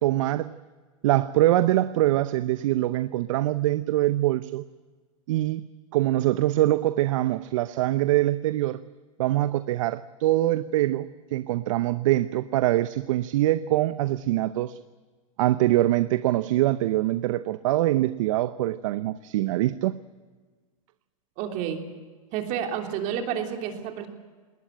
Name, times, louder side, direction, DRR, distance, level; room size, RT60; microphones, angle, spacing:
voice 1, 0.0-0.6 1.0-4.6 5.3-8.8 9.2-14.8 15.4-20.0, right 15 dB, 65° right, 0.7 m, -24 dB
voice 2, 21.4-21.8 22.3-24.1, right 9 dB, 45° right, 3.2 m, -30 dB
20.5 x 19.0 x 9.0 m
hypercardioid pair, 115°, 18 cm